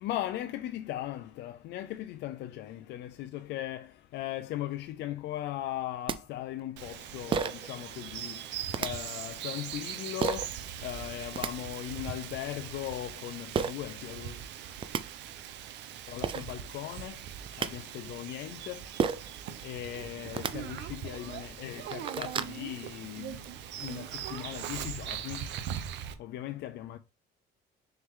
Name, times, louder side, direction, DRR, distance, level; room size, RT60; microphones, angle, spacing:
voice 1, 0.0-8.4 8.8-10.5 10.8-14.3 16.1-17.2 17.6-18.8 19.6-23.4 23.8-25.4 26.2-27.0, left 13 dB, 70° left, 0.5 m, -38 dB
sound 1, 5.8-5.9 6.1-6.2 7.3-7.7 8.7-8.9 10.2-10.5 11.1-11.5 13.5-13.7 14.5-14.6 14.8-15.0 15.9-16.0 16.2-16.5 17.3-17.7 19.0-19.3 20.3-20.5 21.2-21.3 21.7-22.6, right 6 dB, 30° right, 0.5 m, -30 dB
Bird vocalization bird call bird song, 6.8-26.1, right 10 dB, 80° right, 0.8 m, -41 dB
6.3 x 4.6 x 3.7 m
cardioid pair, 155°, 18 cm